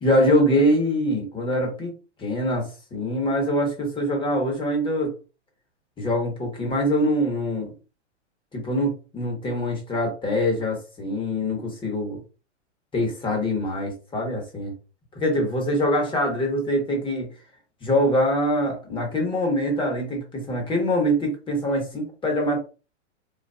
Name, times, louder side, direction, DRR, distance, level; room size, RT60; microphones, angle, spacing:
voice 1, 0.0-5.1 6.0-7.7 8.5-12.2 12.9-14.7 15.1-17.3 17.8-22.6, equal, 15° left, 1 dB, 1.1 m, -24 dB
4.0 x 2.2 x 2.3 m, 0.32 s
hypercardioid pair, 125°, 36 cm